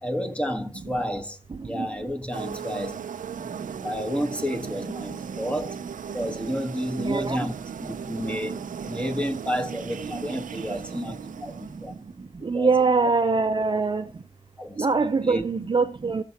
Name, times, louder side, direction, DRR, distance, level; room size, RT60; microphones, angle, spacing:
voice 1, 0.0-1.4 1.6-3.0 3.3-3.4 3.8-5.8 6.1-7.5 7.8-12.0 12.4-12.7 13.0-13.1 14.6-15.4, equal, 10° left, 1.4 m, -31 dB
sound 1, 2.3-12.1, right 7 dB, 75° right, 0.5 m, -37 dB
voice 2, 7.0-7.4 12.4-14.0 14.8-16.2, right 4 dB, 35° right, 0.7 m, -23 dB
19.5 x 6.9 x 2.9 m
wide cardioid pair, 125°, 14 cm